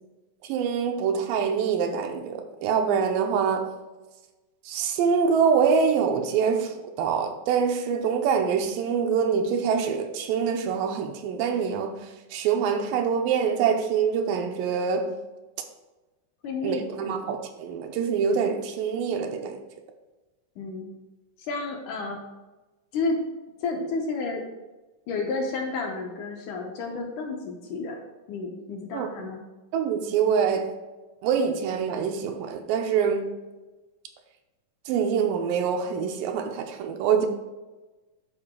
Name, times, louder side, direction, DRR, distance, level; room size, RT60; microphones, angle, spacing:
voice 1, 0.4-3.7 4.7-15.1 16.6-19.6 28.9-29.1 29.7-30.7 31.2-33.3 34.9-37.3, right 6 dB, 85° right, 2.3 m, -25 dB
voice 2, 16.4-17.3 20.6-20.9 21.5-22.2 22.9-23.2 23.6-24.4 25.1-28.0 28.3-29.4, left 3 dB, 70° left, 2.1 m, -31 dB
11.5 x 4.6 x 3.7 m
omnidirectional pair, 4.2 m